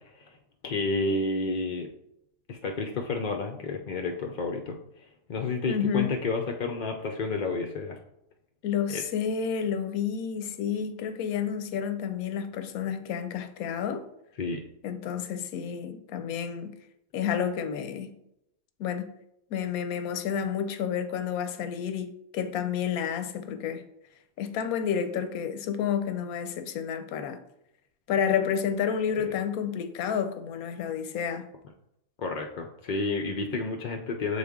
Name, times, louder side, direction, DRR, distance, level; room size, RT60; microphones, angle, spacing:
voice 1, 0.6-1.9 2.5-8.0 8.9-9.0 14.4-14.6 32.2-34.4, left 3 dB, 60° left, 0.5 m, -30 dB
voice 2, 5.7-6.2 8.6-14.1 14.8-16.7 17.1-18.2 18.8-19.1 19.5-23.8 24.4-27.4 28.1-31.5, left 7 dB, 90° left, 1.1 m, -30 dB
6.7 x 3.9 x 3.6 m
omnidirectional pair, 1.5 m